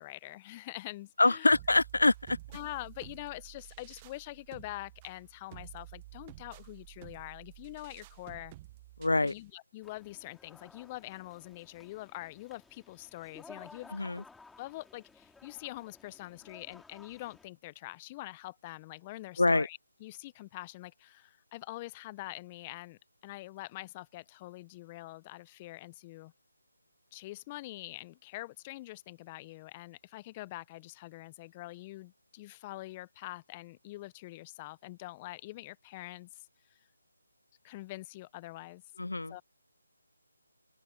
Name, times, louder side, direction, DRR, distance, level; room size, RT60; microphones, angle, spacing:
voice 1, 0.0-1.5 2.5-8.5 9.2-14.2 14.6-26.3 27.1-36.8 37.6-38.8 39.3-39.4, left 18 dB, 20° left, 0.6 m, -45 dB
voice 2, 1.2-2.4 9.0-9.3 13.9-14.2 19.4-19.7 39.0-39.3, left 2 dB, 80° left, 0.4 m, -25 dB
sound 1, 1.5-9.5, right 17 dB, 20° right, 1.0 m, -51 dB
sound 2, 9.8-17.5, left 4 dB, 5° left, 3.9 m, -56 dB
open air
figure-of-eight pair, 155°, 0 cm